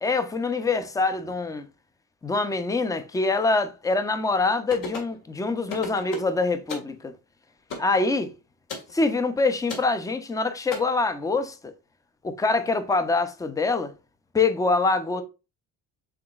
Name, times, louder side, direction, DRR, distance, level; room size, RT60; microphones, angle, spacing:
voice 1, 0.0-1.7 2.2-7.1 7.8-8.3 8.9-11.7 12.2-13.9 14.3-15.2, left 3 dB, 10° left, 0.5 m, -25 dB
sound 1, 4.7-5.2 5.7-6.3 6.7-6.9 7.7-7.9 8.7-8.9 9.7-9.9 10.7-10.8, left 3 dB, 65° left, 1.8 m, -34 dB
5.8 x 3.8 x 2.3 m
cardioid pair, 125°, 36 cm